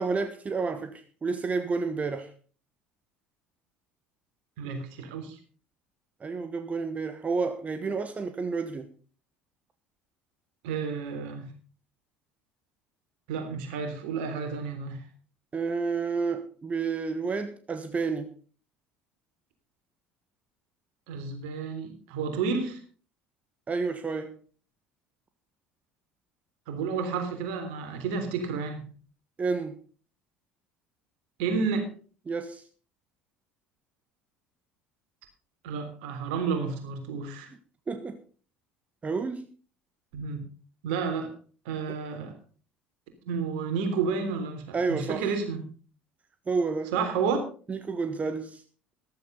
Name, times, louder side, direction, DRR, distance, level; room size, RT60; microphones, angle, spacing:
voice 1, 0.0-2.3 6.2-8.9 15.5-18.3 23.7-24.4 29.4-29.8 32.3-32.6 37.9-38.2 39.0-39.5 41.9-42.0 44.7-45.3 46.5-46.9 47.7-48.6, right 4 dB, 25° right, 1.5 m, -30 dB
voice 2, 4.6-5.4 10.6-11.5 13.3-15.0 21.1-22.8 26.7-28.8 31.4-31.9 35.6-37.5 40.1-40.4 40.8-41.3 41.6-42.3 43.2-45.6 46.9-47.4, right 5 dB, 65° right, 3.5 m, -31 dB
14.5 x 13.5 x 4.0 m
figure-of-eight pair, 60°, 6 cm